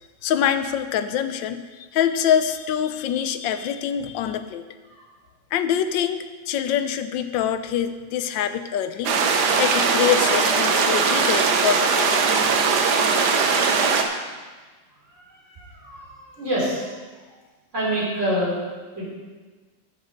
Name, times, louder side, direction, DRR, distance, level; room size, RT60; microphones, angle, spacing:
voice 1, 0.2-4.7 5.5-9.2 9.6-12.3, left 9 dB, 80° left, 11 dB, 1.3 m, -25 dB
sound 1, 9.0-14.0, right 5 dB, 65° right, 1.4 m, -20 dB
voice 2, 15.1-16.9 17.7-18.6 19.0-19.1, equal, 40° right, -7 dB, 4.1 m, -27 dB
13.0 x 6.2 x 5.1 m, 1.3 s
omnidirectional pair, 2.0 m